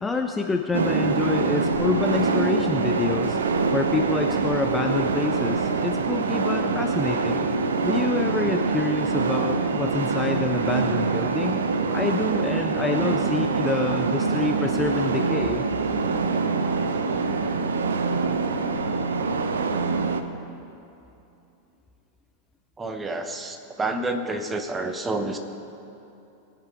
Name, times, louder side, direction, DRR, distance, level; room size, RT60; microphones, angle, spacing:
voice 1, 0.0-3.4 3.7-7.5 7.8-11.6 11.9-15.6, left 3 dB, 10° left, 4 dB, 0.5 m, -27 dB
sound 1, 0.7-20.2, right 4 dB, 65° right, 0.6 m, -24 dB
voice 2, 22.8-25.4, right 2 dB, 15° right, 6 dB, 1.0 m, -29 dB
20.0 x 6.7 x 4.7 m, 2.8 s
figure-of-eight pair, 90°, 0 cm